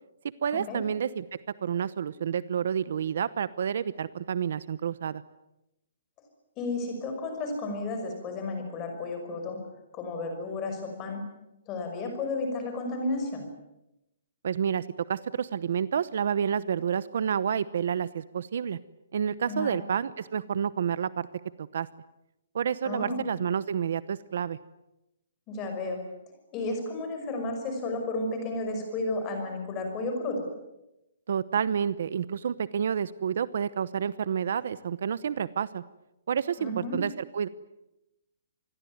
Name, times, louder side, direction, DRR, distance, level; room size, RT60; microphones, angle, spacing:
voice 1, 0.4-1.2 1.6-5.2 14.4-18.8 19.1-21.3 21.6-21.9 22.5-24.6 31.3-35.8 36.3-37.5, right 8 dB, 50° right, 17 dB, 0.9 m, -29 dB
voice 2, 6.6-9.6 9.9-11.2 11.7-13.5 19.5-19.8 22.8-23.2 25.5-26.0 26.5-30.4 36.6-37.0, left 2 dB, 15° left, 4 dB, 5.7 m, -32 dB
27.0 x 21.0 x 9.5 m, 0.91 s
hypercardioid pair, 180°, 0 cm